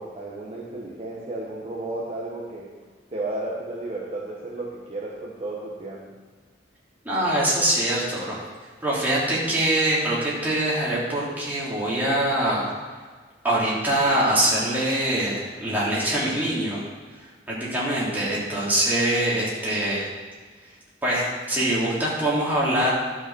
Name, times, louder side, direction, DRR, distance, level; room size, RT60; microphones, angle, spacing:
voice 1, 0.0-2.7 3.1-6.0, right 2 dB, 35° right, -5 dB, 1.3 m, -33 dB
voice 2, 7.0-8.4 8.8-12.7 13.4-16.8 17.5-20.1 21.0-22.9, right 1 dB, 10° right, -8 dB, 3.2 m, -23 dB
12.0 x 5.7 x 6.3 m, 1.5 s
head